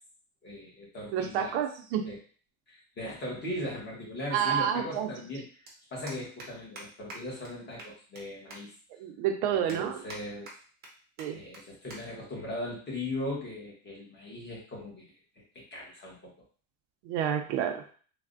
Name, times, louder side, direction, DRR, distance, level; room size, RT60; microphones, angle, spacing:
voice 1, 0.4-1.6 2.0-2.2 2.7-5.6 5.9-8.7 9.5-10.5 11.3-15.1 15.4-16.3, left 1 dB, 25° left, -4 dB, 0.9 m, -39 dB
voice 2, 1.1-2.1 4.3-5.1 9.0-10.0 11.2-11.4 17.0-17.8, right 9 dB, 75° right, 6 dB, 0.6 m, -29 dB
sound 1, 5.7-5.8 6.1-6.5 6.8-6.9 7.1-7.2 7.4-7.5 7.8-8.2 8.5-8.6 9.1-9.2 9.7-10.2 10.5-10.9 11.2-11.3 11.5-11.6 11.9-12.0 12.3-12.5 13.3-13.6, right 2 dB, 25° right, 0.6 m, -45 dB
3.3 x 2.1 x 2.4 m, 0.42 s
cardioid pair, 160°, 43 cm